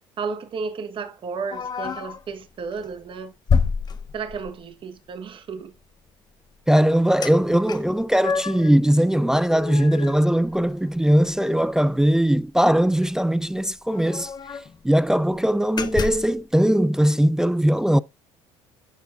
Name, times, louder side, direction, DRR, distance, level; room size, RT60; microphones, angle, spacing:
voice 1, 0.2-3.3 4.1-5.7, right 5 dB, 45° right, 1.3 m, -33 dB
sound 1, 1.5-2.2 2.7-2.9 3.5-4.6 7.2-7.3 7.7-8.7 9.2-11.0 11.3-11.4 11.7-11.9 13.0-13.1 13.3-13.4 13.9-14.8 15.2-15.4 15.8-16.4, left 5 dB, 35° left, 0.9 m, -28 dB
voice 2, 6.7-14.3 14.8-18.0, right 1 dB, 5° right, 0.3 m, -20 dB
12.5 x 4.7 x 2.5 m
supercardioid pair, 85°, 12 cm